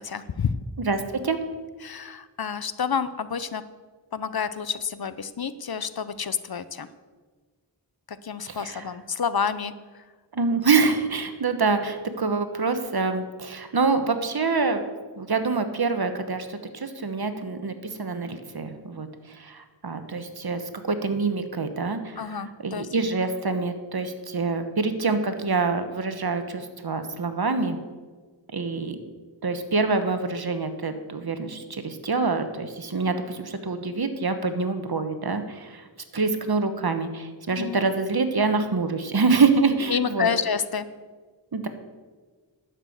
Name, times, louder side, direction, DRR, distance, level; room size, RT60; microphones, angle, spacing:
voice 1, 0.0-0.6 1.8-3.6 4.1-6.9 8.2-9.7 22.2-22.9 37.6-37.9 39.9-40.9, left 6 dB, 55° left, 14 dB, 0.6 m, -29 dB
voice 2, 0.8-1.4 8.5-8.9 10.3-14.8 15.2-19.1 19.3-20.6 20.9-22.4 22.6-27.8 28.5-29.0 29.4-35.8 36.1-40.3 41.5-41.7, right 4 dB, 55° right, 9 dB, 1.1 m, -26 dB
11.0 x 6.9 x 7.8 m, 1.4 s
wide cardioid pair, 75°, 44 cm